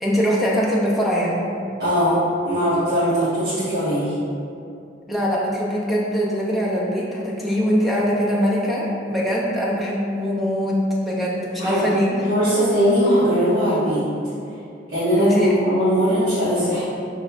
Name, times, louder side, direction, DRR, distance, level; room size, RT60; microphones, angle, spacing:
voice 1, 0.0-1.5 5.1-12.1 15.2-15.6, equal, ahead, -5 dB, 0.4 m, -22 dB
voice 2, 1.8-2.2 2.5-4.1 11.6-14.0 14.9-16.8, equal, 55° right, -15 dB, 1.1 m, -20 dB
5.2 x 3.2 x 2.3 m, 2.5 s
head